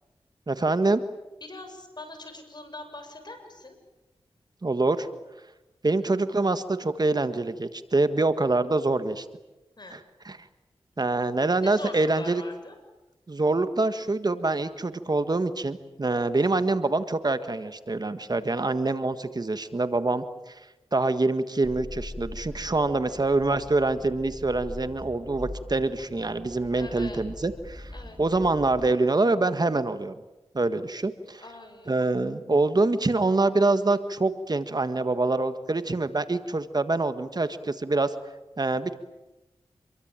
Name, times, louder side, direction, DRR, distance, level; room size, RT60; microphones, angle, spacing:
voice 1, 0.5-1.0 4.6-5.1 5.8-9.2 9.9-10.0 10.2-10.4 11.0-12.4 13.3-20.6 20.9-27.9 28.2-30.1 30.5-31.4 31.9-38.1 38.6-38.9, right 2 dB, 40° right, 11 dB, 1.6 m, -25 dB
voice 2, 1.4-3.8 9.8-10.0 11.6-12.8 22.7-23.1 26.7-27.3 27.9-28.2 31.4-32.0, left 2 dB, 45° left, 6 dB, 7.6 m, -43 dB
sound 1, 21.6-28.9, left 1 dB, 15° left, 2.1 m, -42 dB
27.5 x 23.0 x 9.0 m, 1.0 s
cardioid pair, 50°, 10 cm